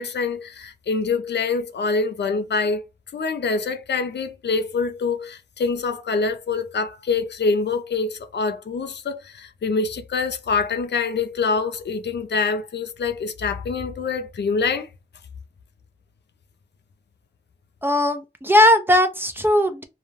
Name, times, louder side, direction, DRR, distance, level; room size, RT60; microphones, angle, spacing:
voice 1, 0.0-2.8 3.1-14.9, left 4 dB, 90° left, 0.4 m, -25 dB
voice 2, 17.8-19.8, left 1 dB, 10° right, 0.5 m, -18 dB
2.3 x 2.1 x 3.2 m
wide cardioid pair, 70°, 17 cm